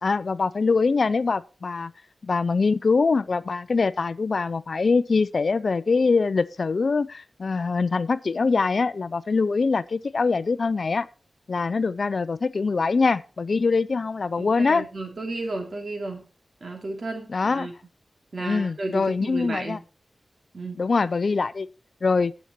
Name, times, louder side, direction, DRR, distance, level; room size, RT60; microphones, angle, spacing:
voice 1, 0.0-1.9 2.2-11.1 11.5-14.8 17.3-17.7 18.4-19.8 20.7-21.7 22.0-22.3, left 4 dB, 65° left, 0.5 m, -23 dB
voice 2, 14.4-16.2 16.6-17.7 18.3-19.8 20.5-20.8, right 2 dB, 60° right, 3.1 m, -33 dB
10.0 x 7.2 x 4.5 m
wide cardioid pair, 65°, 0 cm